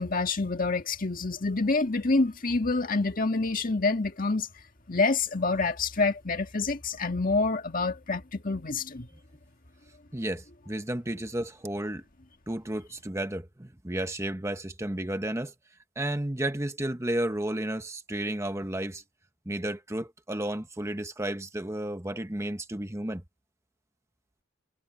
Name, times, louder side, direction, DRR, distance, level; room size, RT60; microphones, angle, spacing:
voice 1, 0.0-4.5 4.9-9.1, left 3 dB, 40° left, 1.8 m, -27 dB
voice 2, 10.1-12.0 12.5-15.5 16.0-19.0 19.5-23.2, right 1 dB, 15° right, 1.0 m, -32 dB
head